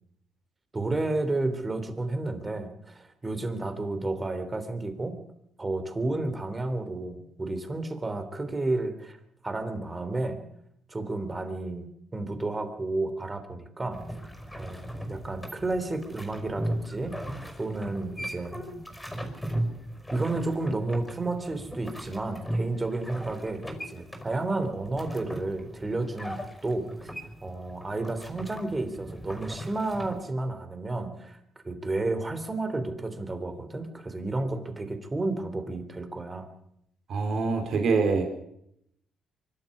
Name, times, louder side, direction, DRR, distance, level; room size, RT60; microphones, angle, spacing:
voice 1, 0.7-5.2 5.6-9.2 9.4-10.4 10.9-14.0 14.6-17.2 17.6-18.6 20.1-27.1 27.4-31.4 31.6-36.5, right 2 dB, 20° right, 9 dB, 3.4 m, -31 dB
sound 1, 13.9-30.2, right 1 dB, 5° left, 5.4 m, -37 dB
voice 2, 37.1-38.2, right 4 dB, 60° right, 4 dB, 3.9 m, -25 dB
24.0 x 12.5 x 8.6 m, 0.75 s
cardioid pair, 90°, 0 cm